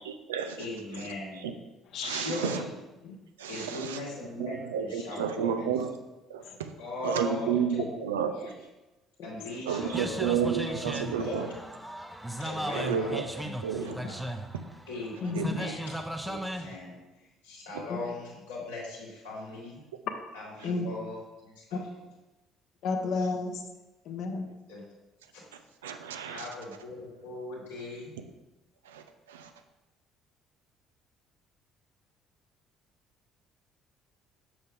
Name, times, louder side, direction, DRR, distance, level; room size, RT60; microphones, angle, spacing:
voice 1, 0.6-1.5 2.0-2.8 3.4-5.7 6.8-7.9 8.1-8.6 9.2-11.4 12.4-13.1 13.4-14.2 14.9-15.8 16.2-17.0 17.4-19.8 20.3-21.8 24.7-24.8 25.3-25.4 26.3-28.1, left 2 dB, 85° left, 2.0 m, -39 dB
voice 2, 2.0-2.6 3.4-4.0 4.4-6.0 6.3-6.5 7.0-8.4 9.7-11.5 12.7-13.2 13.6-14.0 15.3-15.7 17.7-17.8 25.8-26.5 28.9-29.5, right 7 dB, 80° right, 0.5 m, -31 dB
sound 1, 9.7-16.8, equal, 5° right, 0.7 m, -37 dB
voice 3, 15.2-15.6 17.9-18.0 20.6-20.9 21.7-21.8 22.8-23.6 24.0-24.5, left 4 dB, 60° left, 0.9 m, -31 dB
7.0 x 6.5 x 3.4 m
figure-of-eight pair, 50°, 0 cm